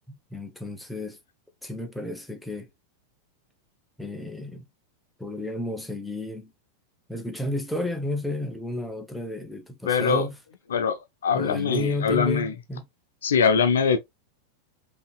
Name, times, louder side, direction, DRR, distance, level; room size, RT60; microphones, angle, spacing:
voice 1, 0.1-1.2 1.6-2.7 4.0-4.7 5.2-6.5 7.1-10.4 11.3-12.9, left 1 dB, ahead, 0.9 m, -32 dB
voice 2, 9.9-10.3 10.7-12.5 13.2-14.0, left 6 dB, 65° left, 0.6 m, -22 dB
5.4 x 2.9 x 2.3 m
figure-of-eight pair, 90°, 0 cm